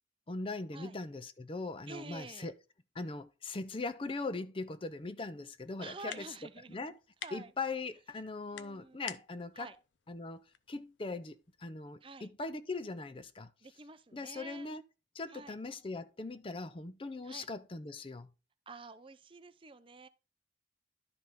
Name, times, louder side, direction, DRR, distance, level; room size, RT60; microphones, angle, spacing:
voice 1, 0.3-2.5 2.9-6.2 6.7-6.9 7.3-9.7 10.1-10.4 10.7-13.5 14.1-14.8 15.1-18.3, left 3 dB, 30° left, 0.5 m, -40 dB
voice 2, 1.9-2.5 5.8-6.8 7.2-7.5 8.5-9.2 9.5-9.8 12.0-12.3 13.6-14.7 15.3-15.6 17.2-17.5 18.7-20.1, right 3 dB, 25° right, 0.5 m, -49 dB
sound 1, 4.9-11.6, left 9 dB, 80° left, 0.7 m, -52 dB
11.5 x 5.3 x 3.6 m
head